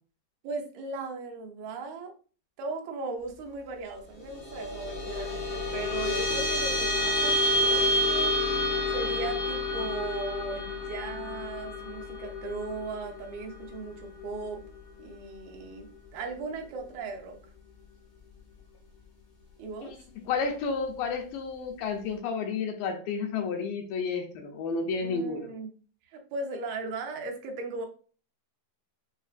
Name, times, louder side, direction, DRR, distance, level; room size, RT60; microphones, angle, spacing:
voice 1, 0.4-2.1 2.6-14.6 15.0-17.4 19.6-19.9 25.0-25.7 26.1-27.9, right 3 dB, 85° right, 3 dB, 2.6 m, -38 dB
sound 1, 4.2-15.0, left 1 dB, 35° left, 1.0 m, -29 dB
voice 2, 19.8-25.5, left 5 dB, 80° left, 4 dB, 2.2 m, -31 dB
6.3 x 2.5 x 2.4 m, 0.39 s
omnidirectional pair, 4.1 m